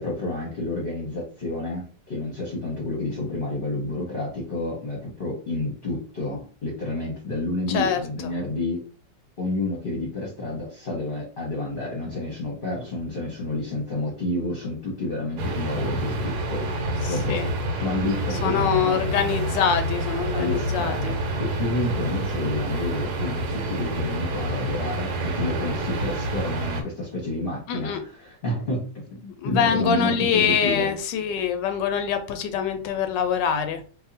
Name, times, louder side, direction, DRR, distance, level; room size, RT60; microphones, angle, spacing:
voice 1, 0.0-8.8 9.4-17.5 17.8-19.0 20.3-30.9, left 2 dB, 35° left, -3 dB, 1.0 m, -30 dB
voice 2, 7.7-8.3 17.0-17.5 18.4-21.1 27.7-28.0 29.4-33.8, left 7 dB, 85° left, 7 dB, 1.3 m, -24 dB
sound 1, 15.4-26.8, right 1 dB, 70° right, 1.3 m, -28 dB
2.8 x 2.6 x 3.9 m, 0.37 s
omnidirectional pair, 1.9 m